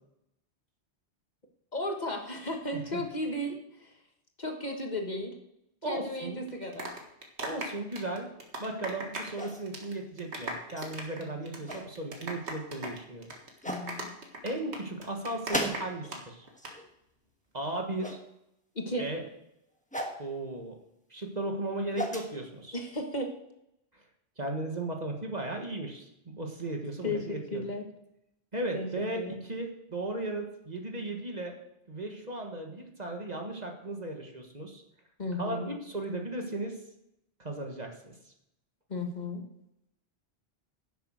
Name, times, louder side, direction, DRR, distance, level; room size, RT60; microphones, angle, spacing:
voice 1, 1.7-3.9 4.4-5.3 5.8-6.9 11.2-11.6 13.6-14.1 18.7-19.0 22.7-23.3 27.0-27.8 28.7-28.9 29.1-29.4 35.2-35.7 38.9-39.4, left 1 dB, 40° left, 3 dB, 1.5 m, -35 dB
voice 2, 5.8-6.5 7.4-8.3 8.6-13.3 14.4-16.5 17.5-18.2 19.0-19.2 20.2-20.8 21.1-22.8 24.4-27.6 28.5-31.6 31.9-34.8 35.4-36.8 37.4-38.1, right 2 dB, 40° right, 2 dB, 1.6 m, -36 dB
sound 1, 6.5-9.4 9.7-9.9 10.2-16.2 16.5-16.7, right 1 dB, 80° right, 2.0 m, -38 dB
sound 2, 9.4-9.9 10.8-10.9 11.4-11.9 12.9-13.0 13.6-13.9 15.5-16.2 16.4-16.9 18.0-18.2 19.9-20.2 21.6-22.3, equal, 5° left, 1.2 m, -35 dB
10.5 x 7.3 x 6.4 m, 0.82 s
omnidirectional pair, 1.1 m